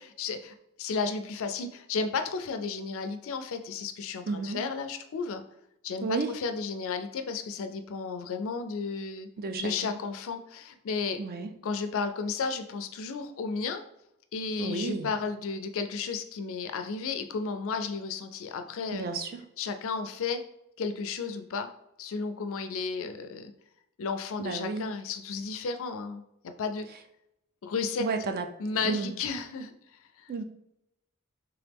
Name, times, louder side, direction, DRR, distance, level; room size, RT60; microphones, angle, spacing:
voice 1, 0.2-5.4 5.8-9.3 9.6-11.2 11.6-13.8 14.3-19.1 19.6-20.4 20.8-21.7 22.0-23.5 24.0-26.2 26.6-26.9 27.6-28.1 28.6-29.7 30.2-30.3, left 4 dB, 60° left, 8 dB, 0.4 m, -33 dB
voice 2, 4.3-4.6 6.0-6.3 9.4-9.9 11.2-11.5 14.6-15.1 18.9-19.4 24.4-24.9 28.0-28.5 28.8-29.1 30.3-30.4, right 4 dB, 45° right, 6 dB, 0.4 m, -32 dB
3.5 x 3.0 x 3.4 m, 0.84 s
head